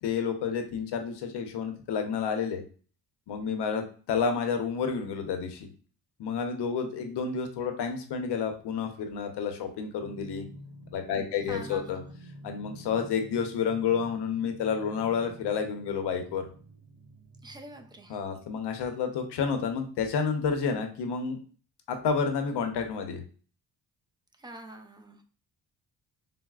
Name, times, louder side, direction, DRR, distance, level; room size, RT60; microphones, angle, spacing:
voice 1, 0.0-2.6 3.3-5.7 6.2-10.5 10.9-12.0 12.4-16.4 18.1-21.4 21.9-23.2, left 6 dB, 80° left, 5 dB, 0.7 m, -30 dB
sound 1, 10.0-18.3, right 1 dB, 55° right, 0.8 m, -49 dB
voice 2, 11.5-12.2 17.4-18.2 24.4-25.2, right 1 dB, 10° right, 4 dB, 0.4 m, -45 dB
3.9 x 2.0 x 2.3 m, 0.40 s
cardioid pair, 95°, 40 cm